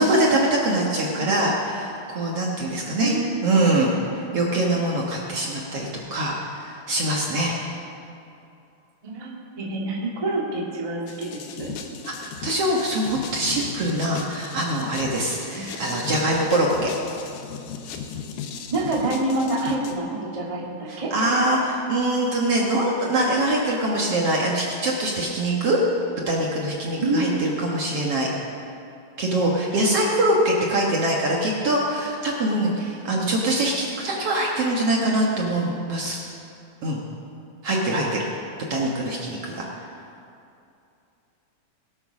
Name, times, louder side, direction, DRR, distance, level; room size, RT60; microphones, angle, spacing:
voice 1, 0.0-3.1 3.4-7.6 12.0-16.9 20.9-25.8 26.3-28.3 29.2-36.2 36.8-37.0 37.6-38.3 38.7-39.7, right 1 dB, 55° right, -2 dB, 1.8 m, -23 dB
voice 2, 9.0-11.7 15.5-15.6 18.7-21.1 27.0-27.2 37.7-37.9, right 2 dB, 20° right, -4 dB, 1.0 m, -27 dB
sound 1, 11.1-19.9, left 6 dB, 70° left, 2.4 m, -37 dB
19.5 x 8.8 x 6.2 m, 2.7 s
omnidirectional pair, 4.2 m